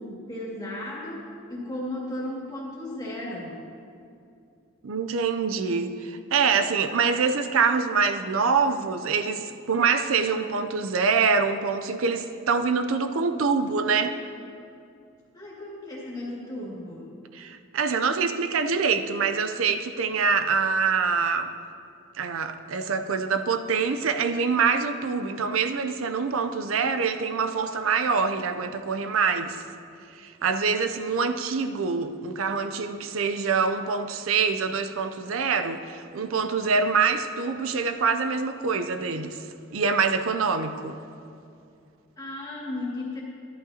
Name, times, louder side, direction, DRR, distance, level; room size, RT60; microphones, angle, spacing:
voice 1, 0.0-3.6 15.3-17.1 42.2-43.2, left 1 dB, 20° left, -5 dB, 2.1 m, -35 dB
voice 2, 4.8-14.1 17.3-21.5 22.2-29.6 30.1-39.4 39.7-41.0, right 5 dB, 85° right, 8 dB, 0.5 m, -25 dB
13.5 x 11.5 x 2.8 m, 2.5 s
head